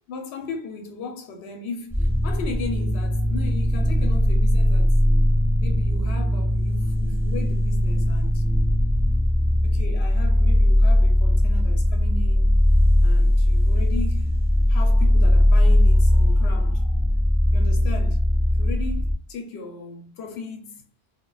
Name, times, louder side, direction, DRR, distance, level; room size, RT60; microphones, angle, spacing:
voice 1, 0.1-5.0 5.6-8.4 9.6-12.6 13.0-14.4 14.7-17.1 17.5-18.3 18.6-20.8, left 3 dB, 80° left, 0.8 m, -36 dB
sound 1, 1.9-19.1, left 1 dB, 5° right, 0.3 m, -19 dB
2.1 x 2.1 x 3.7 m
omnidirectional pair, 1.1 m